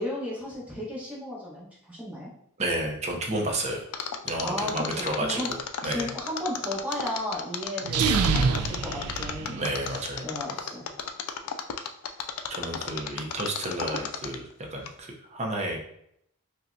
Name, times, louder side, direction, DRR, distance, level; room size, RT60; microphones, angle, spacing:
voice 1, 0.0-2.3 4.4-5.5 5.8-10.9, left 1 dB, 5° right, -7 dB, 1.2 m, -34 dB
voice 2, 2.6-3.8 4.2-5.4 5.8-6.1 9.6-10.2 12.5-14.4 14.7-15.8, right 1 dB, 30° right, 1 dB, 0.6 m, -31 dB
Mechanisms, 3.9-14.5 14.9-15.0, left 8 dB, 75° left, 0.4 m, -33 dB
sound 1, 7.8-10.0, right 5 dB, 75° right, 0.3 m, -26 dB
5.3 x 2.2 x 2.6 m, 0.73 s
head